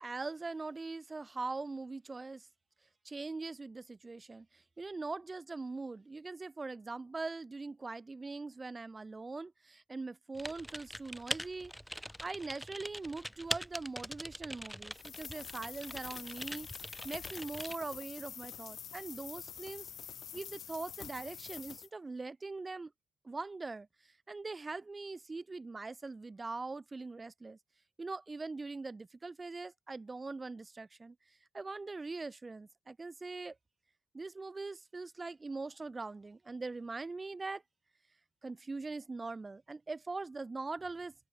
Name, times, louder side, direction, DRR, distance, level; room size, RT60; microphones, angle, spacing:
voice 1, 0.0-2.5 3.0-19.9 20.3-22.9 23.2-27.6 28.0-31.2 31.5-33.6 34.1-37.6 38.4-41.1, right 3 dB, 25° right, 1.1 m, -42 dB
Typing, 10.3-17.8, equal, ahead, 0.4 m, -43 dB
sound 1, 14.9-21.9, left 9 dB, 60° left, 0.5 m, -47 dB
open air
cardioid pair, 90°, 0 cm